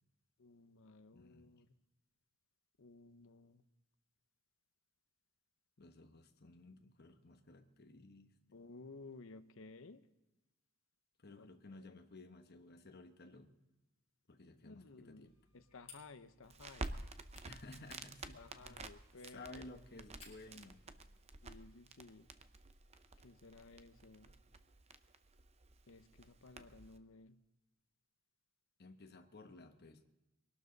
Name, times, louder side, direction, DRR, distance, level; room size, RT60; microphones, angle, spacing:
voice 1, 0.4-1.7 2.8-3.6 8.5-10.0 11.4-11.5 11.8-12.0 14.6-15.3 15.5-16.9 18.3-19.6 21.4-22.3 23.2-24.3 25.9-27.4, left 3 dB, 65° left, 11 dB, 0.8 m, -56 dB
voice 2, 1.1-1.5 5.8-8.6 11.2-13.5 14.3-15.3 17.4-18.9 19.1-20.9 26.6-26.7 28.8-30.0, left 2 dB, 45° left, 5 dB, 1.1 m, -56 dB
sound 1, 15.2-20.6, left 4 dB, 30° left, 5.1 m, -64 dB
Crackle, 16.4-27.0, right 3 dB, 30° right, 0.7 m, -51 dB
22.5 x 12.0 x 4.0 m, 1.0 s
head